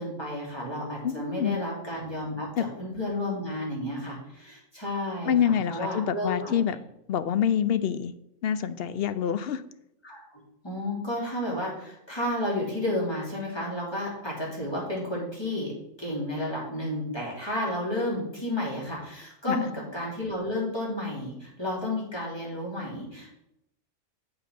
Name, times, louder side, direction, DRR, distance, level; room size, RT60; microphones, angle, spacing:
voice 1, 0.0-6.7 10.0-15.7 16.0-23.4, left 1 dB, 20° left, -5 dB, 3.3 m, -32 dB
voice 2, 1.0-1.6 2.6-2.7 5.3-6.8 7.1-8.1 8.4-9.6 19.5-19.6, left 9 dB, 60° left, 13 dB, 0.7 m, -26 dB
7.8 x 5.9 x 6.0 m, 0.82 s
omnidirectional pair, 1.3 m